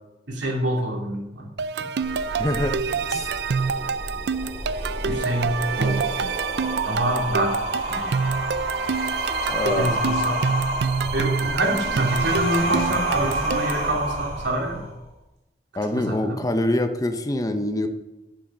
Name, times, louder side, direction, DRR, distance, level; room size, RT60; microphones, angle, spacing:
voice 1, 0.3-1.5 5.1-6.0 6.8-7.6 7.9-8.2 9.8-10.4 11.1-14.8 15.9-16.4, right 1 dB, 85° right, -1 dB, 2.8 m, -26 dB
sound 1, 1.6-13.9, right 5 dB, 65° right, 0.4 m, -27 dB
sound 2, 2.0-15.0, right 1 dB, 35° right, 3.9 m, -30 dB
voice 2, 2.4-3.3 9.5-10.0 15.7-17.9, left 1 dB, 20° left, 8 dB, 0.7 m, -25 dB
10.5 x 7.5 x 6.0 m, 0.97 s
head